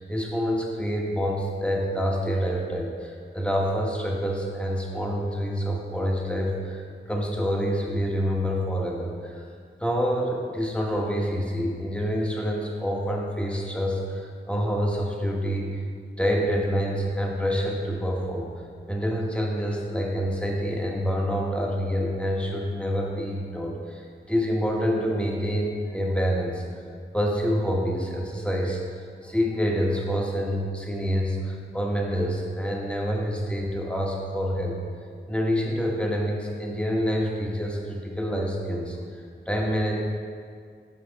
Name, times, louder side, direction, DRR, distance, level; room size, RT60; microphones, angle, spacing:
voice 1, 0.0-6.8 7.1-9.4 9.8-15.7 16.2-18.5 18.9-26.6 27.1-28.8 29.2-34.8 35.3-39.0 39.5-39.9, equal, 5° left, -2 dB, 1.1 m, -27 dB
5.4 x 5.1 x 4.0 m, 2.1 s
cardioid pair, 40°, 20 cm